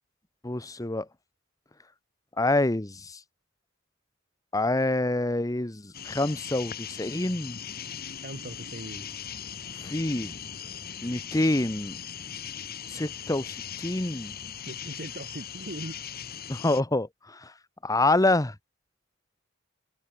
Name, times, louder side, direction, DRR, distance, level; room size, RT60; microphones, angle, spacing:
voice 1, 0.4-1.1 2.4-3.2 4.5-7.6 9.8-10.4 11.0-12.0 12.9-14.3 16.5-17.5 17.8-18.5, left 2 dB, 20° left, 1.0 m, -27 dB
sound 1, 5.9-16.8, left 8 dB, 50° left, 1.8 m, -39 dB
voice 2, 8.2-9.1 14.6-15.9, right 1 dB, 50° right, 3.6 m, -39 dB
head